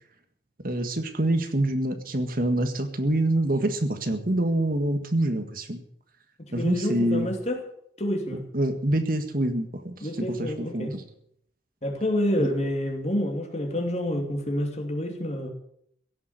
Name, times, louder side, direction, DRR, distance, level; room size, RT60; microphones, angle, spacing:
voice 1, 0.6-5.8 6.5-7.3 8.5-11.0 12.4-12.5, right 1 dB, 55° right, 7 dB, 1.7 m, -26 dB
voice 2, 6.5-7.6 8.0-8.5 10.0-11.0 11.8-15.5, left 1 dB, 40° left, 3 dB, 2.8 m, -28 dB
16.5 x 7.5 x 9.4 m, 0.69 s
head